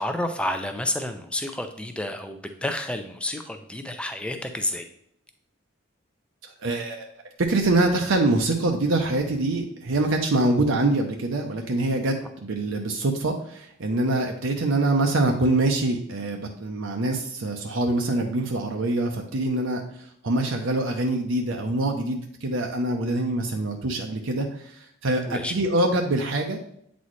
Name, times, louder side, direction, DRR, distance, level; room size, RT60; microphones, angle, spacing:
voice 1, 0.0-4.9 12.2-12.3 25.3-25.5, left 1 dB, 5° left, 6 dB, 0.5 m, -30 dB
voice 2, 6.6-7.1 7.4-19.8 20.2-24.5 25.0-26.6, right 2 dB, 70° right, 2 dB, 0.7 m, -24 dB
8.3 x 4.1 x 3.1 m, 0.69 s
head